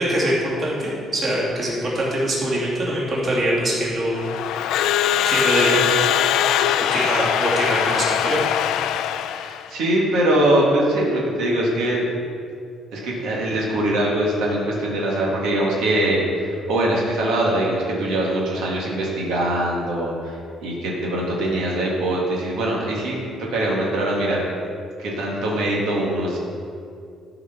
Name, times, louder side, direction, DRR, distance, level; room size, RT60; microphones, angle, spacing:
voice 1, 0.0-4.2 4.6-4.7 5.3-5.8 6.8-8.4, right 1 dB, 30° right, -6 dB, 2.4 m, -23 dB
Crowd / Alarm, 4.1-9.7, left 10 dB, 75° left, 0.3 m, -21 dB
voice 2, 9.3-12.1 12.9-24.4 25.0-26.4, right 1 dB, 85° right, -3 dB, 2.0 m, -22 dB
13.0 x 5.0 x 5.9 m, 2.4 s
cardioid pair, 170°, 0 cm